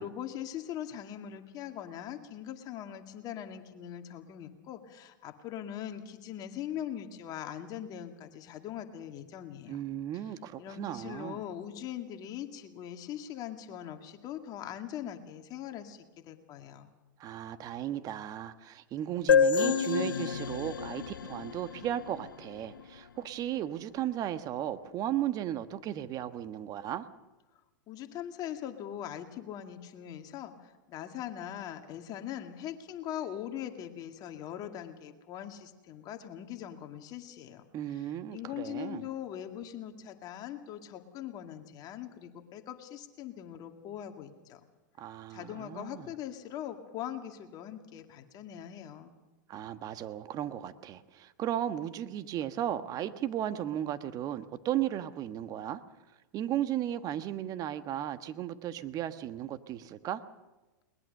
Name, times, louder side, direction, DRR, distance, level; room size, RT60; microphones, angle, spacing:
voice 1, 0.0-9.8 10.6-16.9 27.9-37.6 38.3-44.6 45.3-49.1, left 10 dB, 35° left, 6 dB, 2.2 m, -41 dB
voice 2, 9.7-11.4 17.2-27.1 37.7-39.1 45.0-46.1 49.5-55.8 56.3-60.2, right 11 dB, 35° right, 11 dB, 1.4 m, -35 dB
sound 1, 19.3-22.8, left 7 dB, 85° left, 1.0 m, -28 dB
21.5 x 20.5 x 6.7 m, 1.1 s
hypercardioid pair, 110°, 11 cm